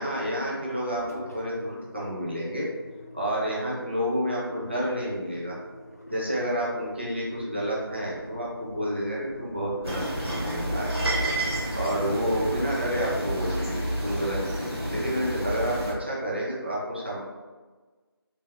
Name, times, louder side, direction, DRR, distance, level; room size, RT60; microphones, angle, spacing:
voice 1, 0.0-2.7 3.1-5.6 6.1-10.9 11.7-17.2, equal, 25° right, -5 dB, 0.5 m, -30 dB
Engine, 0.9-14.9, left 1 dB, 40° left, 0.3 m, -47 dB
sound 1, 9.8-15.9, right 1 dB, 85° right, 1.1 m, -29 dB
3.3 x 2.4 x 2.5 m, 1.3 s
figure-of-eight pair, 170°, 13 cm